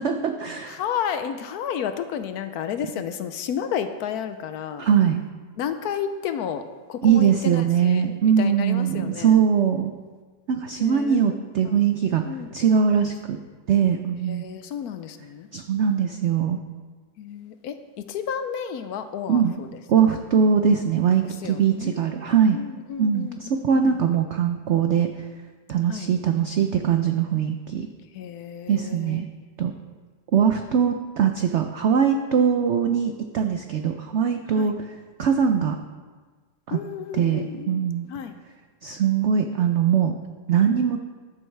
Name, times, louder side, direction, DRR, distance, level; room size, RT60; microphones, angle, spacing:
voice 1, 0.0-0.8 4.8-5.2 7.0-9.9 10.5-12.2 12.5-13.4 13.7-14.4 15.5-16.6 19.3-19.5 19.9-22.6 23.0-25.1 25.7-27.9 28.7-29.3 29.6-29.7 30.3-34.7 35.2-35.8 36.7-36.8 37.1-38.1 38.8-40.2 40.5-41.0, right 7 dB, 85° right, 6 dB, 0.6 m, -21 dB
voice 2, 0.7-4.9 5.6-9.4 10.8-11.2 11.6-11.8 12.2-12.5 14.3-15.5 17.2-20.2 21.2-22.0 22.5-23.9 25.9-26.1 28.1-29.2 34.6-34.7 36.7-38.4, left 8 dB, 70° left, 9 dB, 1.0 m, -32 dB
13.0 x 7.9 x 3.3 m, 1.4 s
omnidirectional pair, 1.9 m